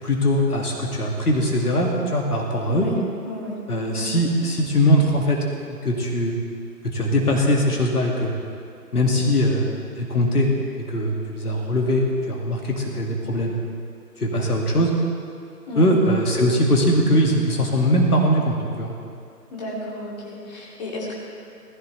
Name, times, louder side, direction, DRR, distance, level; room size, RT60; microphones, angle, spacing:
voice 1, 0.0-2.9 3.7-5.4 5.7-6.3 6.8-8.3 8.9-10.5 10.9-13.5 14.2-14.9 15.8-18.9, equal, 65° left, -1 dB, 2.3 m, -21 dB
voice 2, 3.3-3.6 3.9-4.1 15.7-15.9 19.5-21.2, left 1 dB, 25° left, -6 dB, 2.8 m, -32 dB
19.0 x 15.0 x 3.4 m, 2.3 s
figure-of-eight pair, 160°, 49 cm